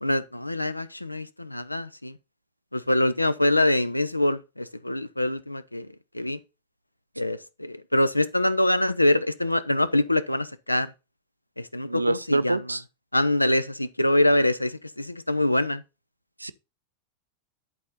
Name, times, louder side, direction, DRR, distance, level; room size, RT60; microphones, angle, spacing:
voice 1, 0.0-2.2 2.7-5.9 6.1-6.4 7.2-10.9 11.6-12.6 13.1-15.8, left 1 dB, 85° left, 0.5 m, -24 dB
voice 2, 11.8-12.8 16.4-16.5, right 2 dB, 85° right, 0.4 m, -26 dB
10.5 x 4.2 x 4.0 m
figure-of-eight pair, 90°, 0 cm